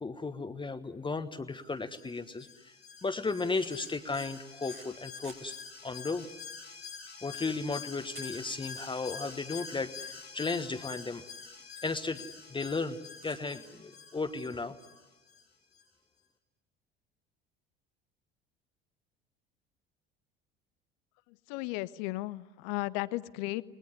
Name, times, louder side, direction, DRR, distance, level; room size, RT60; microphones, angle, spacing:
voice 1, 0.0-2.7 3.0-5.5 5.8-6.3 7.2-11.2 11.8-13.0 13.2-14.8, left 3 dB, 15° left, 8 dB, 1.3 m, -35 dB
Alarm, 2.0-15.4 15.8-15.9, left 6 dB, 85° left, 2.3 m, -47 dB
sound 1, 3.5-5.4 6.0-6.1 6.3-6.5 6.9-7.0 8.1-9.0 9.2-9.3 9.8-9.9 10.2-10.3 10.5-10.6 11.8-11.9 13.2-13.4, right 3 dB, 90° right, 4.3 m, -52 dB
voice 2, 21.5-23.6, left 19 dB, 55° left, 18 dB, 0.9 m, -35 dB
29.5 x 20.5 x 9.8 m, 1.1 s
figure-of-eight pair, 65°, 30 cm